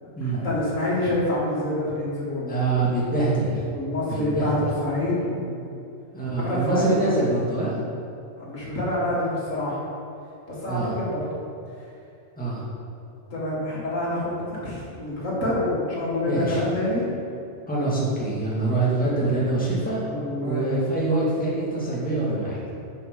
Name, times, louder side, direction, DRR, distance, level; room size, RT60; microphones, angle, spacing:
voice 1, 0.0-2.6 3.7-5.7 6.4-7.0 8.4-9.8 10.5-11.3 13.3-17.1 20.0-20.8, left 1 dB, 70° left, -6 dB, 2.5 m, -27 dB
voice 2, 2.5-3.6 4.1-4.5 6.1-7.8 10.7-10.9 12.4-12.6 16.2-16.6 17.7-20.0 20.4-22.6, right 2 dB, 5° left, -7 dB, 2.0 m, -25 dB
8.0 x 6.6 x 5.4 m, 2.7 s
omnidirectional pair, 1.4 m